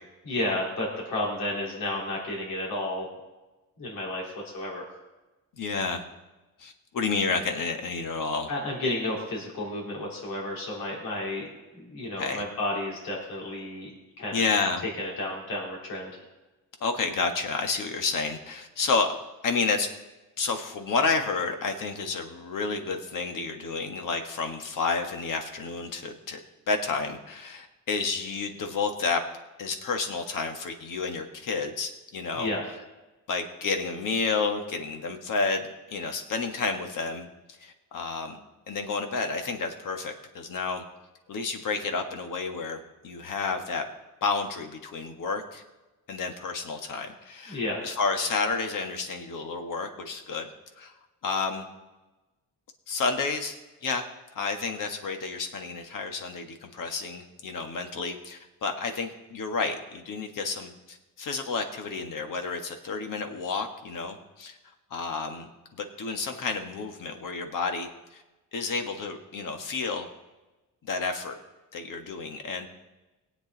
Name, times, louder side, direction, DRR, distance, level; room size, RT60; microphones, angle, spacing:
voice 1, 0.2-3.1 3.8-4.8 8.5-14.4 15.0-16.2 32.4-32.6 47.5-47.8, left 1 dB, 85° left, -2 dB, 3.7 m, -32 dB
voice 2, 5.6-6.0 6.6-8.5 12.2-12.4 14.3-14.8 16.8-19.1 19.4-19.9 20.4-26.4 26.7-29.2 29.6-32.5 33.3-38.4 38.7-40.8 41.3-43.8 44.2-45.6 46.1-50.5 50.8-50.9 51.2-51.6 52.9-53.5 53.8-54.1 54.3-64.6 64.9-68.2 68.5-70.1 70.8-71.3 71.7-72.7, left 4 dB, 70° left, 5 dB, 1.6 m, -30 dB
18.5 x 8.2 x 4.0 m, 1.1 s
cardioid pair, 80°, 34 cm